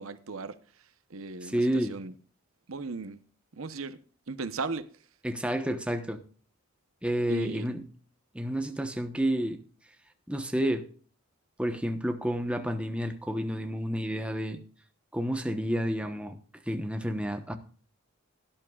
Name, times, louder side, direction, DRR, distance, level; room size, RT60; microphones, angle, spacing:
voice 1, 0.0-2.1 2.7-3.2 3.6-4.0 4.3-4.9 7.3-7.7, right 3 dB, 80° right, 0.9 m, -37 dB
voice 2, 1.4-1.9 5.2-6.2 7.0-7.8 8.3-9.6 10.3-10.8 11.6-14.6 15.1-16.4 16.7-17.6, equal, 5° right, 1.0 m, -30 dB
17.5 x 11.0 x 2.4 m
head